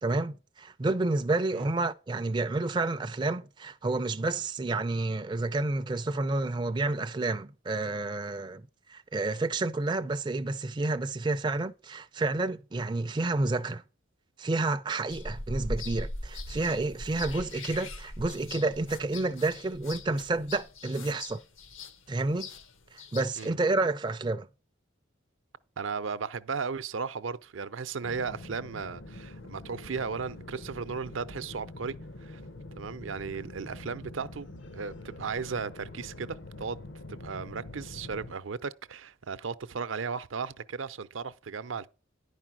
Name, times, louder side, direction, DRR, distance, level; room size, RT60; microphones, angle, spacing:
voice 1, 0.0-8.6 8.9-13.8 14.4-21.4 22.1-22.5 22.9-24.5, right 2 dB, 25° right, 0.4 m, -30 dB
sound 1, 15.1-23.5, left 2 dB, 85° left, 1.2 m, -40 dB
voice 2, 25.8-31.9 32.2-32.4 32.8-34.5 34.7-36.8 37.1-41.9, right 5 dB, 80° right, 0.6 m, -35 dB
sound 2, 28.0-38.3, left 2 dB, 65° left, 0.8 m, -45 dB
10.5 x 5.0 x 6.0 m
head